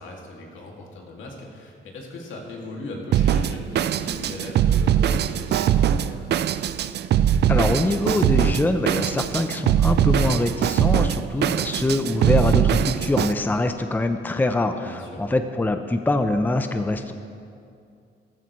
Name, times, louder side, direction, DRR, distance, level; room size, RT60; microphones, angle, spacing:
voice 1, 0.0-6.5 14.8-15.2, left 2 dB, 75° left, -1 dB, 2.3 m, -38 dB
Drum kit, 3.1-13.3, right 9 dB, 55° right, 0.4 m, -21 dB
voice 2, 7.5-17.1, left 2 dB, 10° left, 8 dB, 0.6 m, -24 dB
14.0 x 13.5 x 3.1 m, 2.4 s
cardioid pair, 90°, 20 cm